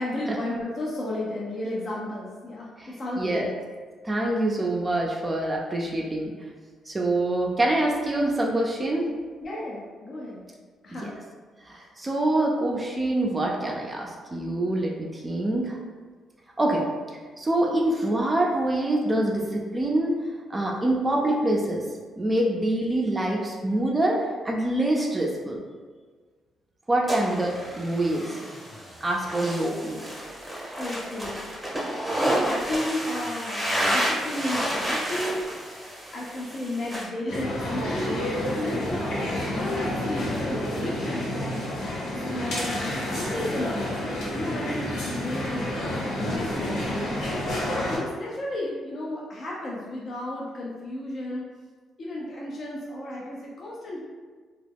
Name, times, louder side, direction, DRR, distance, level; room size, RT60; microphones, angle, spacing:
voice 1, 0.0-3.5 9.4-10.4 10.8-11.1 30.8-31.5 32.2-35.8 36.1-39.1 39.6-51.5 52.0-54.0, left 1 dB, 50° left, -5 dB, 0.4 m, -33 dB
voice 2, 2.8-3.5 4.0-6.3 6.9-9.1 11.0-11.1 11.7-15.8 16.6-16.9 17.4-20.2 20.5-21.9 22.2-25.6 26.9-28.4 29.0-30.0, right 1 dB, 20° right, -2 dB, 0.4 m, -25 dB
sound 1, 27.1-37.1, equal, 5° right, 0.8 m, -30 dB
sound 2, 37.3-48.0, left 1 dB, 85° left, 1.1 m, -29 dB
2.3 x 2.0 x 3.3 m, 1.5 s
cardioid pair, 90°, 0 cm